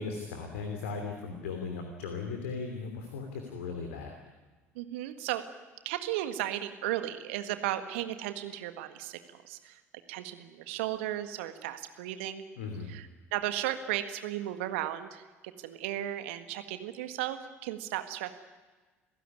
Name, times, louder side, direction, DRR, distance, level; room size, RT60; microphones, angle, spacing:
voice 1, 0.0-4.2 12.6-12.9, left 4 dB, 75° left, 4 dB, 2.9 m, -37 dB
voice 2, 4.7-5.4 5.8-9.2 9.4-9.8 10.1-12.4 12.9-15.2 15.6-18.3, right 13 dB, 70° right, 9 dB, 1.7 m, -35 dB
28.0 x 16.0 x 9.7 m, 1.3 s
figure-of-eight pair, 60°, 7 cm